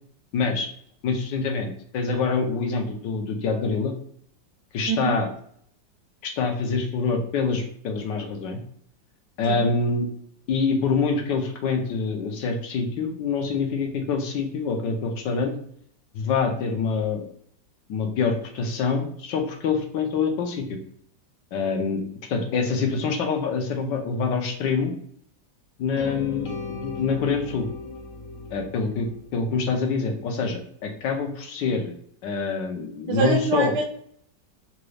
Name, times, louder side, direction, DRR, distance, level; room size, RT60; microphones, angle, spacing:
voice 1, 0.3-0.7 1.0-3.9 4.7-5.3 6.2-8.6 9.4-10.1 10.5-15.6 16.1-17.3 17.9-20.8 21.5-22.0 22.3-24.9 25.8-27.7 28.5-31.9 32.2-33.7, left 4 dB, 80° left, 4 dB, 1.4 m, -25 dB
voice 2, 4.9-5.2 9.5-9.6 33.1-33.8, right 4 dB, 80° right, 1 dB, 1.2 m, -24 dB
sound 1, 26.0-30.0, left 4 dB, 60° left, 0.9 m, -37 dB
3.9 x 2.3 x 3.1 m, 0.62 s
omnidirectional pair, 2.0 m